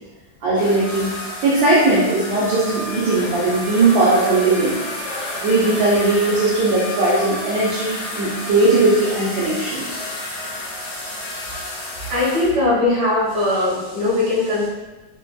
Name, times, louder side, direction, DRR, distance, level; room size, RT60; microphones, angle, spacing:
voice 1, 0.4-1.1 1.4-4.8 5.4-9.8, right 2 dB, 80° right, -8 dB, 1.5 m, -18 dB
sound 1, 0.6-12.5, left 1 dB, 65° left, 1.3 m, -30 dB
voice 2, 12.1-14.7, left 2 dB, 60° right, -6 dB, 1.8 m, -19 dB
4.9 x 2.9 x 2.3 m, 1.1 s
omnidirectional pair, 2.1 m